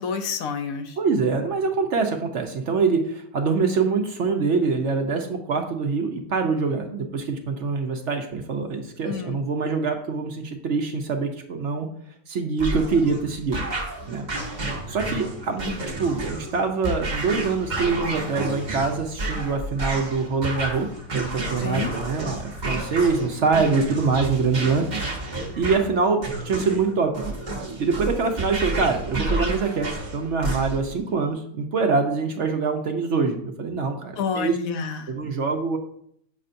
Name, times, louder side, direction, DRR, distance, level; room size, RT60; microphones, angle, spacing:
voice 1, 0.0-1.0 9.0-9.4 21.6-21.9 34.2-35.1, left 6 dB, 70° left, 7 dB, 1.0 m, -29 dB
voice 2, 1.0-11.9 12.3-13.6 14.1-14.3 14.9-20.9 21.1-25.2 25.6-27.1 27.8-34.5 35.1-35.8, right 4 dB, 60° right, 4 dB, 0.9 m, -24 dB
sound 1, 12.6-31.0, right 2 dB, 35° right, 0.9 m, -30 dB
7.3 x 5.4 x 2.6 m, 0.67 s
omnidirectional pair, 1.6 m